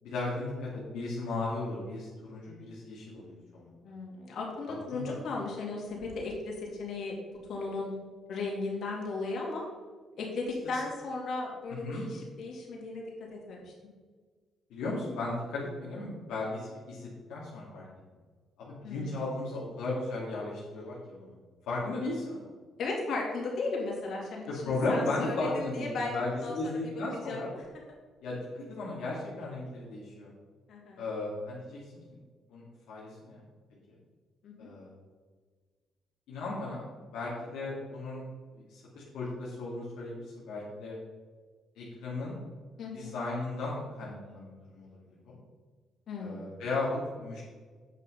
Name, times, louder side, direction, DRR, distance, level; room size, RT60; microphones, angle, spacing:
voice 1, 0.0-3.7 4.9-5.1 10.7-10.8 11.7-12.0 14.7-17.9 18.6-21.4 21.7-22.5 24.5-27.5 28.2-30.3 31.0-31.8 32.5-33.4 33.9-34.0 34.6-34.9 36.3-36.8 37.1-38.2 38.5-41.0 41.8-42.4 42.9-44.9 45.3-45.4 46.2-47.4, left 2 dB, 90° left, -7 dB, 2.5 m, -35 dB
voice 2, 3.8-7.9 8.3-9.6 10.2-13.7 18.8-19.1 22.8-26.1 26.4-26.8 27.2-27.6 30.7-31.0 34.4-34.7 42.8-43.1 46.1-46.4, left 3 dB, 65° left, -2 dB, 3.2 m, -36 dB
9.0 x 6.1 x 5.7 m, 1.5 s
cardioid pair, 90°, 0 cm